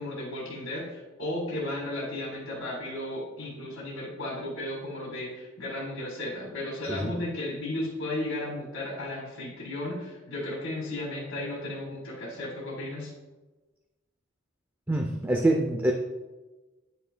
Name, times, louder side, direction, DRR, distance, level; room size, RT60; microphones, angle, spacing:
voice 1, 0.0-13.1, left 1 dB, 90° left, -4 dB, 1.8 m, -34 dB
voice 2, 14.9-15.9, right 1 dB, 10° right, 2 dB, 0.4 m, -25 dB
9.1 x 5.8 x 2.2 m, 1.2 s
head